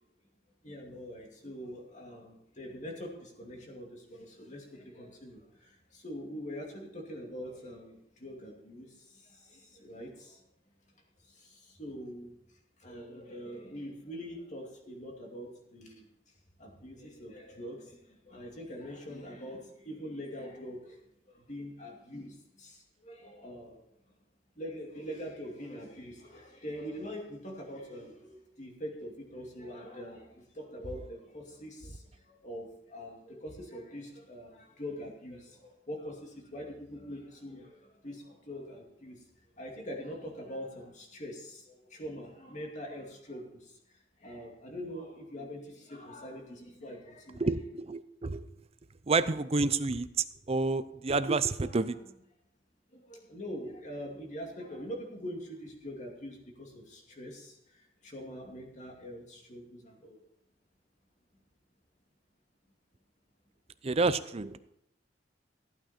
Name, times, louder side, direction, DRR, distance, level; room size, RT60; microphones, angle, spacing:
voice 1, 0.6-10.4 11.3-12.3 12.8-16.1 16.6-21.0 21.3-23.8 24.6-39.2 39.6-43.8 44.2-47.4 51.6-51.8 52.9-60.2, equal, 40° left, 1 dB, 2.4 m, -44 dB
voice 2, 47.4-48.4 49.1-50.1 50.5-52.0 63.8-64.6, right 3 dB, 35° right, 13 dB, 0.5 m, -29 dB
15.0 x 9.0 x 4.3 m, 0.79 s
head